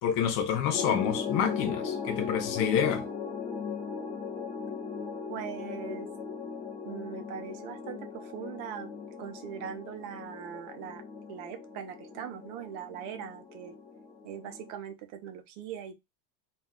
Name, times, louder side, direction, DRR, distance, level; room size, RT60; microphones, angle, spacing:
voice 1, 0.0-3.0, left 8 dB, 60° left, 0.9 m, -28 dB
sound 1, 0.7-14.7, left 5 dB, 15° left, 0.4 m, -38 dB
voice 2, 5.3-6.1 6.8-8.9 9.2-11.0 11.3-13.7 14.2-16.0, right 9 dB, 70° right, 0.8 m, -41 dB
2.5 x 2.3 x 3.6 m
cardioid pair, 165°, 44 cm